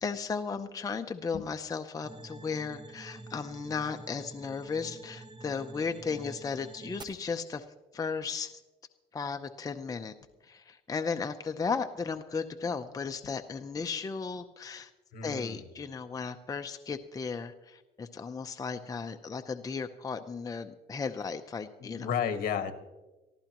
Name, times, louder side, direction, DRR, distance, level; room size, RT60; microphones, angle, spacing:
voice 1, 0.0-7.6 7.9-8.6 9.1-10.1 10.4-14.9 15.2-22.1, left 5 dB, 20° left, 7 dB, 0.6 m, -35 dB
sound 1, 2.0-7.0, right 2 dB, 25° right, 1.2 m, -47 dB
voice 2, 15.1-15.7 21.8-22.7, left 7 dB, 60° left, 7 dB, 1.6 m, -32 dB
23.5 x 14.5 x 3.0 m, 1.1 s
cardioid pair, 110°, 17 cm